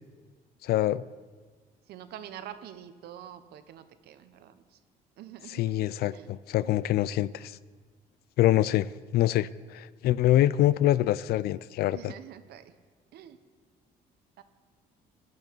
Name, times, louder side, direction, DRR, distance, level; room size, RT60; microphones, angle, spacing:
voice 1, 0.6-1.0 5.5-7.6 8.4-8.9 9.1-12.1, left 14 dB, 65° left, 18 dB, 0.4 m, -25 dB
voice 2, 1.9-4.8 5.2-5.8 6.1-6.8 11.9-12.7 13.1-13.4 14.4-14.5, right 10 dB, 70° right, 11 dB, 0.8 m, -46 dB
13.5 x 10.5 x 4.6 m, 1.5 s
cardioid pair, 110°, 17 cm